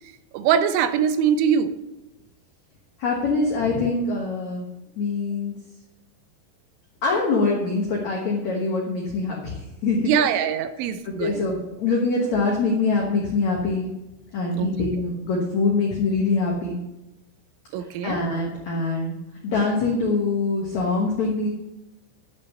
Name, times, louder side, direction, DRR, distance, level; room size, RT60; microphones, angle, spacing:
voice 1, 0.3-1.7 10.1-11.4 14.6-14.9 17.7-18.2, right 8 dB, 80° right, 10 dB, 3.1 m, -22 dB
voice 2, 3.0-4.7 4.9-5.6 7.0-10.4 11.0-13.9 14.3-16.8 17.8-19.1 19.4-21.5, left 3 dB, 80° left, -2 dB, 1.6 m, -24 dB
11.0 x 5.6 x 7.1 m, 0.97 s
omnidirectional pair, 5.6 m